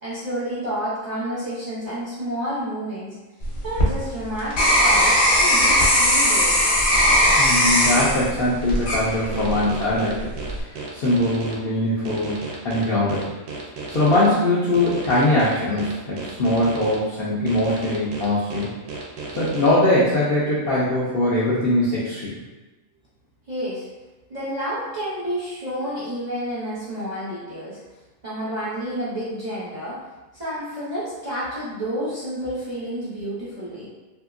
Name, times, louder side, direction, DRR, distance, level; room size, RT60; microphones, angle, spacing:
voice 1, 0.0-3.2 3.6-6.6 23.5-23.9 24.3-27.8 28.2-30.0 30.3-33.9, equal, 45° right, -10 dB, 0.5 m, -30 dB
sound 1, 3.4-9.6 10.1-10.6, equal, 50° left, 1.0 m, -19 dB
voice 2, 7.4-13.2 13.9-18.7 19.3-22.3, left 1 dB, 75° left, -7 dB, 0.5 m, -21 dB
sound 2, 9.3-11.5 12.0-14.3 14.7-17.0 17.5-19.7, right 3 dB, 90° right, 1.2 m, -33 dB
2.8 x 2.7 x 2.4 m, 1.2 s
omnidirectional pair, 1.6 m